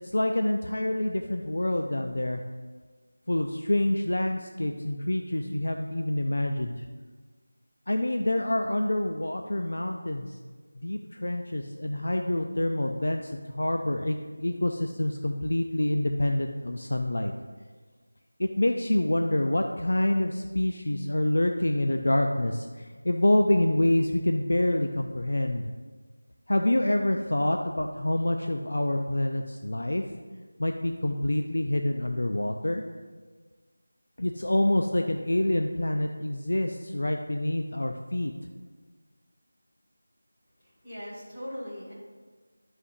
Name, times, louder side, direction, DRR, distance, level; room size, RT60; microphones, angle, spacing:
voice 1, 0.1-2.4 3.3-6.7 7.9-10.3 10.8-17.3 18.4-25.6 26.5-30.0 30.6-32.8 34.2-38.3, left 1 dB, 70° left, 4 dB, 0.5 m, -27 dB
voice 2, 40.6-41.9, equal, 10° left, -14 dB, 2.0 m, -40 dB
11.0 x 5.7 x 2.7 m, 1.5 s
figure-of-eight pair, 180°, 0 cm